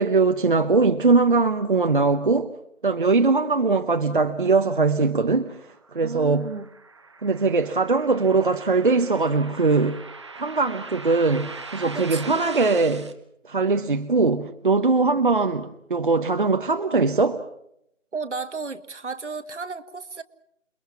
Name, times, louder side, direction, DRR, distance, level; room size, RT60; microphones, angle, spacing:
voice 1, 0.0-2.5 2.8-5.6 5.9-6.5 7.2-10.0 10.3-13.1 13.5-17.4, right 4 dB, 40° right, 7 dB, 1.0 m, -21 dB
sound 1, 5.4-13.1, right 3 dB, 20° right, 1.1 m, -41 dB
voice 2, 6.0-6.7 11.8-12.3 18.1-20.2, right 4 dB, 60° right, 10 dB, 1.8 m, -33 dB
29.0 x 22.0 x 5.9 m, 0.76 s
figure-of-eight pair, 165°, 39 cm